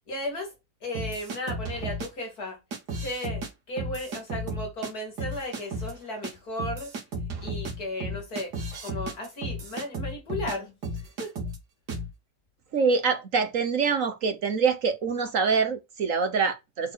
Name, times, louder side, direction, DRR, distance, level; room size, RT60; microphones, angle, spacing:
voice 1, 0.1-0.5 0.8-2.6 3.0-6.9 7.4-8.5 8.8-11.3, left 1 dB, 65° left, 3.3 m, -35 dB
sound 1, 0.9-2.1 2.7-3.5 3.8-4.9 5.2-5.9 6.2-6.3 6.6-10.6 10.8-11.6 11.9-12.1, right 1 dB, 80° right, 2.2 m, -34 dB
voice 2, 12.7-16.9, right 5 dB, 55° right, 1.2 m, -25 dB
7.0 x 4.4 x 6.5 m
omnidirectional pair, 1.8 m